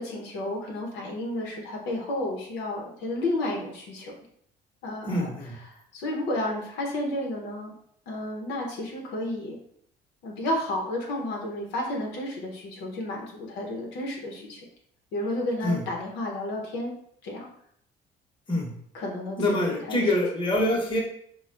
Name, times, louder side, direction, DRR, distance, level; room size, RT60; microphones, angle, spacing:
voice 1, 0.0-4.1 4.8-5.3 5.7-7.7 8.1-9.6 10.2-14.6 15.1-16.9 17.2-17.5 18.9-20.0, left 1 dB, 85° left, -1 dB, 0.9 m, -32 dB
voice 2, 5.1-5.5 15.6-15.8 18.5-18.7 19.4-21.0, left 1 dB, 30° left, -2 dB, 1.0 m, -25 dB
3.8 x 2.3 x 3.3 m, 0.67 s
cardioid pair, 110°, 17 cm